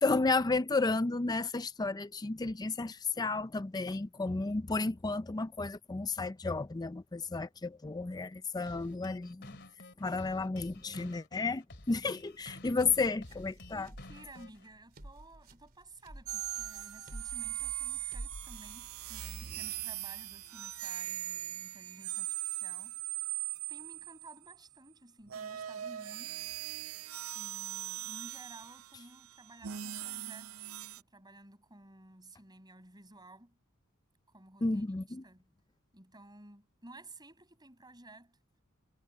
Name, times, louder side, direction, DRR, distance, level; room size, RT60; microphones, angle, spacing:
voice 1, 0.0-9.6 10.0-13.9 34.6-35.2, left 3 dB, 20° left, 0.5 m, -32 dB
sound 1, 8.7-14.7, left 2 dB, 55° left, 2.4 m, -52 dB
sound 2, 12.2-19.2, right 1 dB, 45° right, 3.4 m, -50 dB
voice 2, 13.7-23.0 23.7-26.4 27.3-30.6 31.0-33.6 34.3-34.9 35.2-35.5 35.9-38.4, right 2 dB, 20° right, 6.6 m, -54 dB
sound 3, 16.3-24.6 25.3-31.0, right 12 dB, 75° right, 0.6 m, -40 dB
head